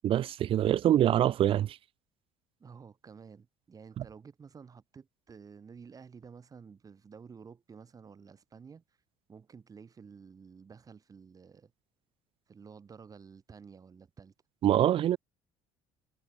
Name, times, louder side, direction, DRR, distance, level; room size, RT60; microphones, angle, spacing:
voice 1, 0.0-1.8 4.0-4.1 14.6-15.2, right 11 dB, 50° right, 0.8 m, -25 dB
voice 2, 2.6-8.8 9.3-11.7 12.5-14.3, right 6 dB, 30° right, 2.7 m, -51 dB
supercardioid pair, 95°, 12 cm